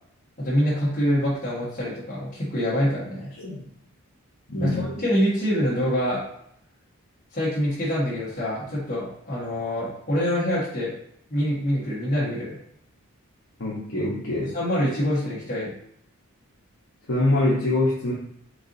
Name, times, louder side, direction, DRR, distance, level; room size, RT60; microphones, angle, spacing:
voice 1, 0.4-3.3 4.6-6.2 7.3-10.9 11.3-12.6 14.4-15.7, equal, 35° left, -8 dB, 1.3 m, -25 dB
voice 2, 4.5-4.9 13.6-14.5 17.1-18.1, left 2 dB, 65° left, -7 dB, 1.0 m, -24 dB
4.6 x 3.8 x 2.7 m, 0.71 s
head